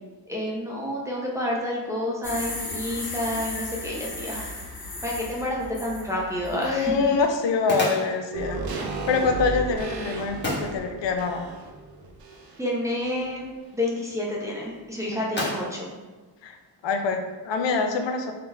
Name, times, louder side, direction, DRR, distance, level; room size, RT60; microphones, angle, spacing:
voice 1, 0.3-4.5 5.0-6.9 12.6-15.9, left 1 dB, 5° right, -4 dB, 0.6 m, -29 dB
sound 1, 2.2-7.2, left 2 dB, 55° left, 0.9 m, -36 dB
sound 2, 5.5-17.2, left 2 dB, 25° left, 1.2 m, -38 dB
voice 2, 6.5-8.6 9.1-11.4 15.1-15.2 16.4-16.6 16.8-18.3, left 4 dB, 80° left, 5 dB, 0.5 m, -25 dB
sound 3, 8.3-12.8 13.1-13.2, right 3 dB, 55° right, 0.6 m, -34 dB
3.8 x 2.8 x 3.3 m, 1.3 s
wide cardioid pair, 145°, 43 cm